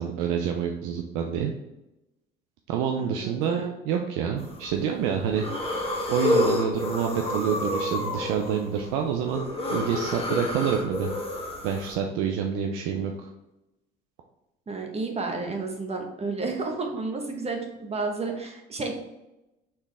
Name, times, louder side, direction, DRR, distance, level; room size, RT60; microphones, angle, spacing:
voice 1, 0.0-1.5 2.7-5.7 6.1-11.1 11.6-13.3, right 7 dB, 85° right, 3 dB, 0.5 m, -27 dB
voice 2, 3.0-3.7 14.7-18.9, right 3 dB, 30° right, 2 dB, 1.1 m, -31 dB
sound 1, 4.4-4.8 5.2-11.9, left 2 dB, 30° left, 1.4 m, -29 dB
4.4 x 3.6 x 3.3 m, 0.92 s
supercardioid pair, 85°, 21 cm